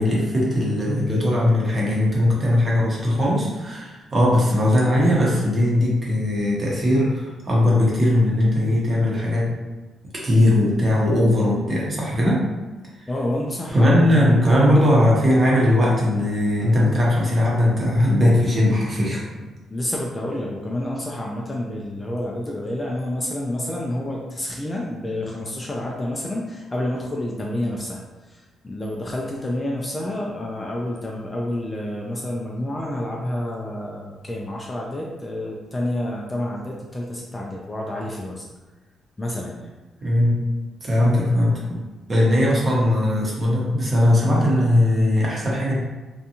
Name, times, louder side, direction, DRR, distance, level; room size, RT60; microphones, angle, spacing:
voice 1, 0.0-9.5 10.2-12.4 13.0-13.1 13.7-19.2 40.0-40.4 40.8-41.8 42.1-45.8, left 1 dB, 30° right, -5 dB, 0.8 m, -19 dB
voice 2, 13.1-15.1 19.7-28.0 28.3-38.4 39.2-39.7, left 1 dB, 15° left, -3 dB, 0.3 m, -29 dB
2.6 x 2.3 x 2.8 m, 1.2 s
cardioid pair, 125°, 0 cm